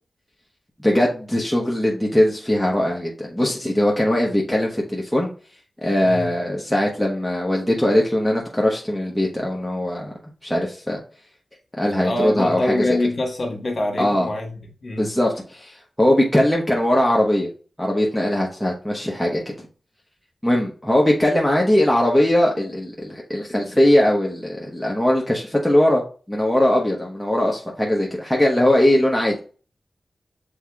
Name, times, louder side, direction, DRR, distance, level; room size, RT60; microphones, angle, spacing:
voice 1, 0.8-5.3 5.8-10.1 10.4-11.0 11.8-13.0 14.0-14.3 15.0-17.5 17.8-19.7 20.4-29.4, left 1 dB, 5° left, 1.0 m, -20 dB
voice 2, 12.0-15.1, left 1 dB, 55° left, 1.3 m, -25 dB
6.2 x 3.6 x 2.3 m
cardioid pair, 65°, 0 cm